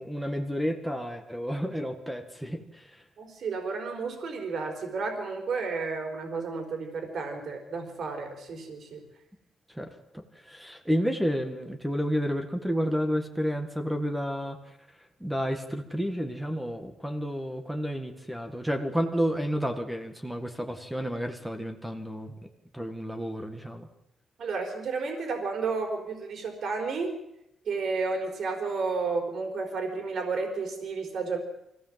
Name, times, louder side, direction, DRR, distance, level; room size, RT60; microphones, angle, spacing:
voice 1, 0.0-2.9 9.8-9.9 10.1-14.6 15.2-22.3 22.7-23.9, equal, 5° right, 6 dB, 1.8 m, -31 dB
voice 2, 3.2-9.0 24.4-27.1 27.7-31.4, right 4 dB, 55° right, 3 dB, 4.3 m, -32 dB
24.5 x 16.0 x 7.6 m, 0.84 s
cardioid pair, 150°, 0 cm